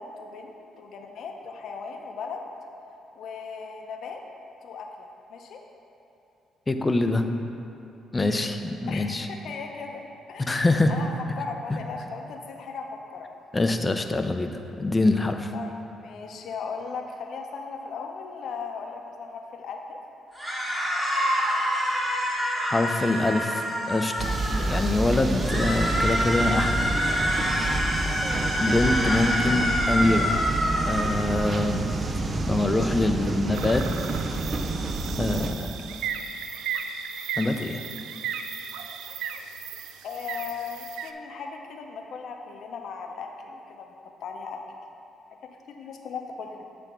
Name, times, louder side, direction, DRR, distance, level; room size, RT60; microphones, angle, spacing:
voice 1, 0.0-2.4 3.2-4.2 4.6-5.6 8.9-10.0 10.3-13.3 15.5-20.0 27.9-28.4 40.0-44.6 45.7-46.6, left 5 dB, 70° left, 3 dB, 0.7 m, -37 dB
voice 2, 6.7-7.3 8.1-9.3 10.4-10.9 11.7-11.8 13.5-14.5 14.8-15.5 22.6-23.6 23.9-26.8 28.2-30.4 30.9-31.9 32.5-33.9 35.2-35.9 37.4-37.8, left 2 dB, 20° left, 6 dB, 0.5 m, -24 dB
sound 1, 20.3-24.8 25.3-31.1, equal, 10° right, 1.7 m, -27 dB
sound 2, 24.2-35.5, right 2 dB, 40° right, 0.5 m, -29 dB
sound 3, 33.5-41.1, right 7 dB, 90° right, 0.3 m, -35 dB
7.9 x 3.4 x 6.0 m, 2.8 s
cardioid pair, 90°, 0 cm